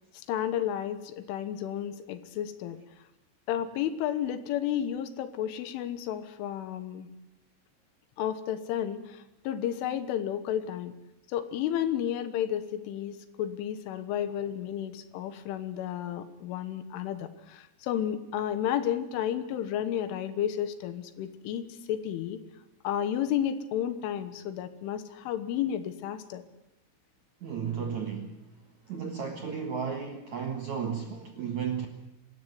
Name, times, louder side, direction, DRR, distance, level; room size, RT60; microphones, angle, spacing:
voice 1, 0.3-2.8 3.5-7.1 8.2-10.9 11.3-22.4 22.8-26.4, left 10 dB, 80° left, 11 dB, 3.7 m, -32 dB
voice 2, 27.4-28.4 28.9-31.9, right 7 dB, 65° right, 4 dB, 1.9 m, -34 dB
25.0 x 13.5 x 9.5 m, 0.88 s
omnidirectional pair, 5.7 m